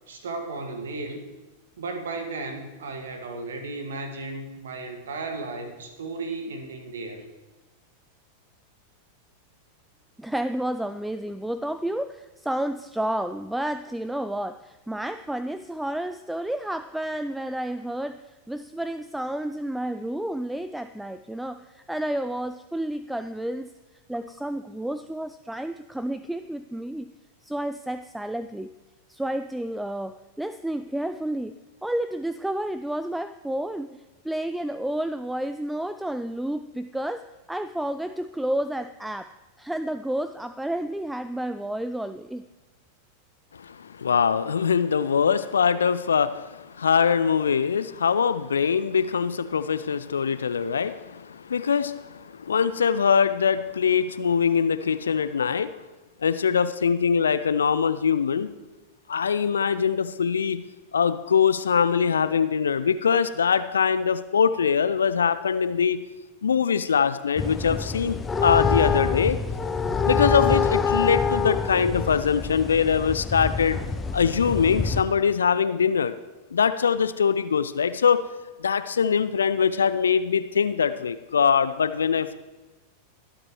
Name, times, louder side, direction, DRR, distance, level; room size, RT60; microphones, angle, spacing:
voice 1, 0.1-1.2 1.8-7.3, right 3 dB, 65° right, 6 dB, 1.8 m, -34 dB
voice 2, 10.2-23.7 24.1-27.1 27.4-28.7 29.1-31.5 31.8-39.3 39.6-42.4, right 1 dB, 5° right, 12 dB, 0.3 m, -31 dB
voice 3, 43.5-55.8 56.2-58.5 59.1-60.6 60.9-66.0 66.4-69.4 70.1-73.8 74.1-76.1 76.5-78.2 78.6-82.3, left 6 dB, 70° left, 13 dB, 0.5 m, -23 dB
sound 1, 67.4-75.0, left 5 dB, 15° left, 0.7 m, -26 dB
22.5 x 8.7 x 3.1 m, 1.1 s
figure-of-eight pair, 90°, 0 cm